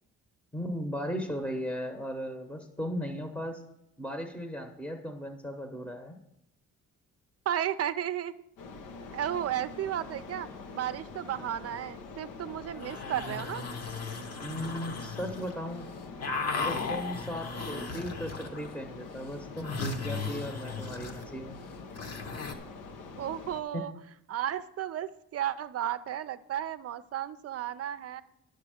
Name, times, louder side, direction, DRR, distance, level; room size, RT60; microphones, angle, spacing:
voice 1, 0.5-3.6 4.0-6.2 14.4-15.9 16.5-21.6 23.7-23.8, equal, 5° left, 5 dB, 0.9 m, -37 dB
voice 2, 7.5-8.3 9.1-10.5 10.7-13.6 23.2-23.9 24.3-28.2, right 10 dB, 55° right, 13 dB, 0.5 m, -33 dB
sound 1, 8.6-23.6, left 4 dB, 85° left, 0.9 m, -45 dB
sound 2, 12.8-15.5 15.8-18.7 19.0-22.5, left 4 dB, 55° left, 1.2 m, -37 dB
9.6 x 6.6 x 5.0 m, 0.84 s
cardioid pair, 90°, 30 cm